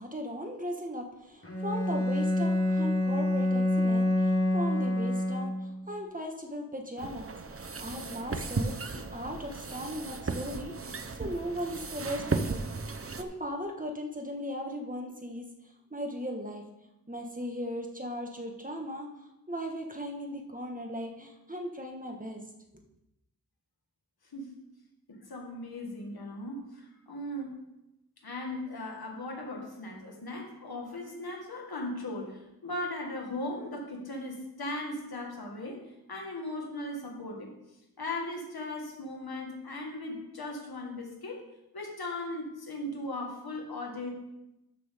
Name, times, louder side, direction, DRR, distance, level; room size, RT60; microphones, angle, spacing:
voice 1, 0.0-12.6 13.2-15.4 15.9-16.6 17.1-19.1 19.5-22.4, equal, 20° right, 2 dB, 1.6 m, -38 dB
Bowed string instrument, 1.4-5.9, left 1 dB, 40° left, 1.6 m, -27 dB
sound 1, 7.0-13.2, right 3 dB, 40° right, 0.8 m, -35 dB
voice 2, 25.1-27.5 28.2-35.8 36.1-37.5 38.0-41.4 41.7-44.1, left 1 dB, 85° left, 0 dB, 1.9 m, -38 dB
12.5 x 6.3 x 3.7 m, 0.91 s
wide cardioid pair, 40°, 36 cm